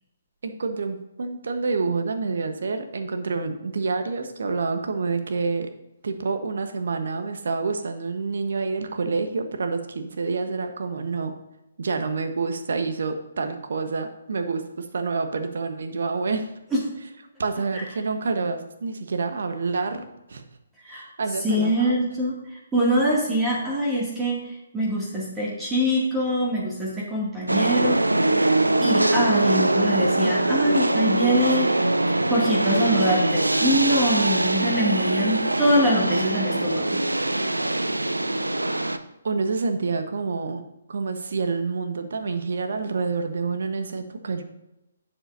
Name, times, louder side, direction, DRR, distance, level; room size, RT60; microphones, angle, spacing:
voice 1, 0.4-5.7 6.0-11.4 11.8-16.5 17.4-20.4 20.9-22.0 39.2-40.6 40.9-44.4, right 4 dB, 60° right, 7 dB, 1.2 m, -28 dB
voice 2, 21.4-22.4 22.7-28.0 28.8-31.7 32.1-36.9, equal, 10° right, -6 dB, 2.4 m, -24 dB
sound 1, 27.5-39.0, right 1 dB, 85° right, 0.6 m, -22 dB
11.5 x 7.7 x 2.7 m, 0.93 s
figure-of-eight pair, 135°, 0 cm